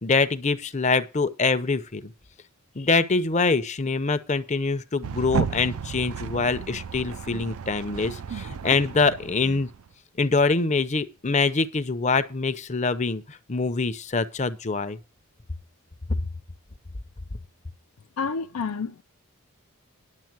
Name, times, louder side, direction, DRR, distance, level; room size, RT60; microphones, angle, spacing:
voice 1, 0.0-2.1 2.8-9.7 10.2-15.0 16.1-16.2, left 4 dB, 30° left, 0.7 m, -24 dB
sound 1, 5.0-9.9, right 6 dB, 80° right, 0.5 m, -33 dB
voice 2, 18.2-19.0, left 5 dB, 80° left, 0.5 m, -29 dB
10.5 x 7.2 x 6.0 m
head